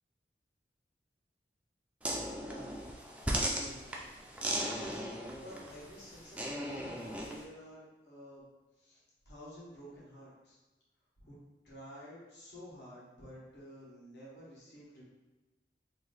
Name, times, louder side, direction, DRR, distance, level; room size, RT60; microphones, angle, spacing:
sound 1, 2.0-7.4, right 1 dB, 5° right, 0.3 m, -37 dB
voice 1, 2.4-2.7 3.3-3.8 4.4-8.4 8.8-10.6 11.2-11.4 11.6-15.0, equal, 75° left, -7 dB, 1.4 m, -50 dB
3.1 x 2.6 x 3.9 m, 1.1 s
head